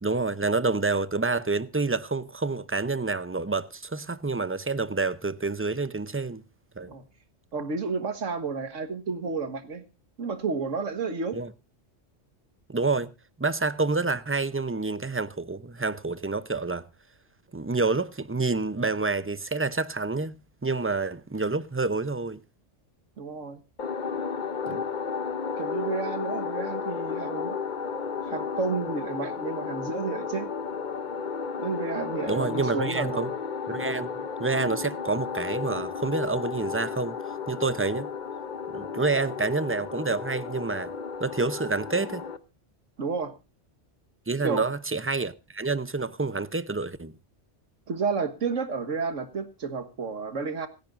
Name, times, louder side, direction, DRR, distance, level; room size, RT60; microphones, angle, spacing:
voice 1, 0.0-6.4 6.8-6.9 11.3-11.5 12.7-13.1 13.4-16.9 17.5-22.4 24.7-24.8 32.3-33.3 33.7-34.1 34.4-37.2 37.5-38.1 38.7-40.9 41.2-42.2 44.3-47.1, right 3 dB, 20° right, 0.3 m, -28 dB
voice 2, 7.5-9.8 10.2-11.4 23.2-23.6 24.6-24.8 25.6-27.6 28.2-30.5 31.6-33.3 43.0-43.3 44.4-44.6 47.9-50.7, right 4 dB, 90° right, 1.8 m, -31 dB
sound 1, 23.8-42.4, left 6 dB, 45° left, 0.9 m, -33 dB
26.0 x 10.5 x 2.5 m
omnidirectional pair, 1.3 m